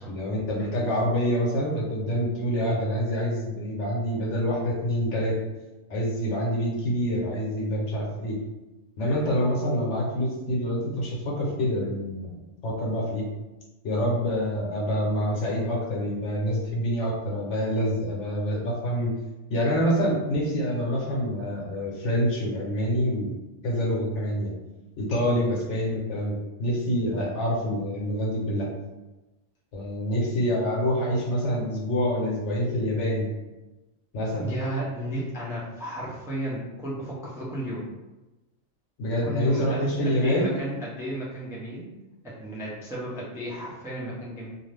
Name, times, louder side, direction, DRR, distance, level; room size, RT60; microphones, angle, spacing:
voice 1, 0.1-5.4 5.9-8.4 9.0-12.3 12.6-13.3 13.8-19.1 19.5-24.5 25.0-28.7 29.7-33.3 34.1-34.5 39.0-40.5, equal, 65° left, -3 dB, 1.1 m, -26 dB
voice 2, 34.4-37.9 39.2-41.9 42.2-44.5, right 1 dB, 5° right, -7 dB, 0.4 m, -33 dB
2.5 x 2.5 x 3.2 m, 1.1 s
omnidirectional pair, 1.3 m